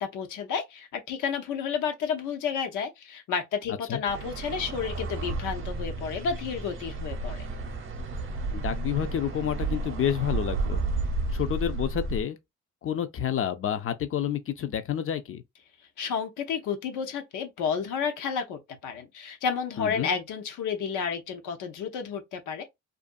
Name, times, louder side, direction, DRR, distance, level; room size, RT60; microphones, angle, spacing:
voice 1, 0.0-7.5 16.0-22.6, left 6 dB, 85° left, 0.8 m, -31 dB
sound 1, 4.1-12.2, right 3 dB, 45° right, 0.8 m, -32 dB
voice 2, 8.5-10.8 11.3-12.4 12.8-15.4 19.8-20.1, left 9 dB, 45° left, 0.5 m, -29 dB
2.5 x 2.3 x 2.5 m
cardioid pair, 90°, 30 cm